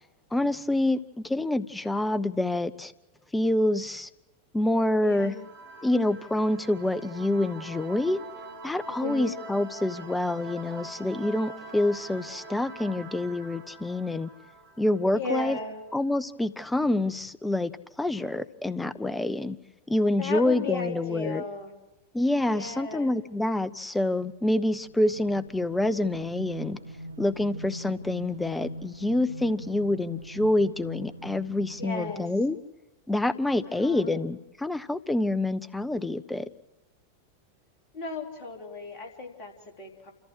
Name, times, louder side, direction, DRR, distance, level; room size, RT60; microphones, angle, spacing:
voice 1, 0.3-2.9 3.3-4.1 4.5-5.4 5.8-8.2 8.6-14.3 14.8-15.6 15.9-17.7 18.0-19.6 19.9-21.4 22.1-26.8 27.2-32.6 33.1-36.5, left 1 dB, 5° left, 13 dB, 0.6 m, -27 dB
voice 2, 5.0-5.5 9.0-9.4 15.1-15.8 20.2-21.7 22.5-23.1 29.7-29.8 31.8-32.2 33.8-34.2 37.9-40.1, left 4 dB, 40° left, 1 dB, 3.5 m, -35 dB
sound 1, 5.3-15.6, right 2 dB, 55° right, 2.3 m, -44 dB
sound 2, 24.8-32.5, right 1 dB, 80° right, 0.6 m, -42 dB
28.5 x 14.5 x 6.3 m, 1.0 s
figure-of-eight pair, 90°, 0 cm